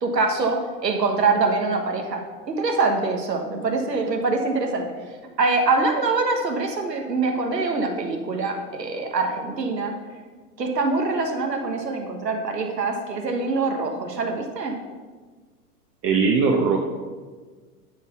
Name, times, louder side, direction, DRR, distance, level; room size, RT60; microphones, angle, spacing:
voice 1, 0.0-4.9 5.4-9.9 10.6-14.8, right 3 dB, 90° right, 3 dB, 1.4 m, -24 dB
voice 2, 16.0-16.8, right 5 dB, 25° right, 1 dB, 0.8 m, -19 dB
11.0 x 4.1 x 6.0 m, 1.4 s
hypercardioid pair, 100°, 48 cm